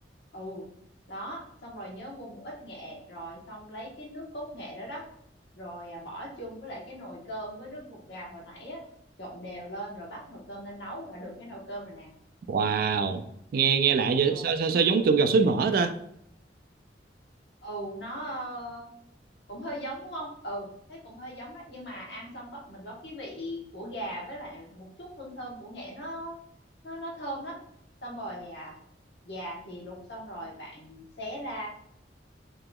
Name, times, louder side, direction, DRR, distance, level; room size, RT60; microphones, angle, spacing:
voice 1, 0.3-0.7 1.1-5.1 5.5-8.8 9.2-12.1 14.3-14.5 17.6-18.9 19.5-26.4 26.8-27.6 28.0-28.8 29.2-31.7, equal, 70° left, -2 dB, 1.0 m, -39 dB
voice 2, 12.5-13.2 13.5-15.9, right 5 dB, 55° right, 8 dB, 0.3 m, -23 dB
3.8 x 2.9 x 2.2 m, 0.73 s
head